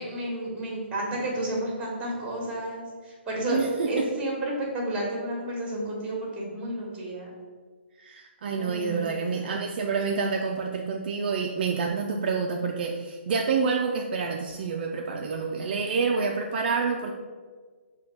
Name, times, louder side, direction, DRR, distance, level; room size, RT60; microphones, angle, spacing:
voice 1, 0.0-3.6 3.9-7.3 8.5-9.5, right 1 dB, 15° right, -2 dB, 1.1 m, -31 dB
voice 2, 3.5-4.1 8.0-17.1, right 5 dB, 50° right, 2 dB, 0.3 m, -28 dB
4.0 x 2.3 x 4.3 m, 1.5 s
hypercardioid pair, 150°, 6 cm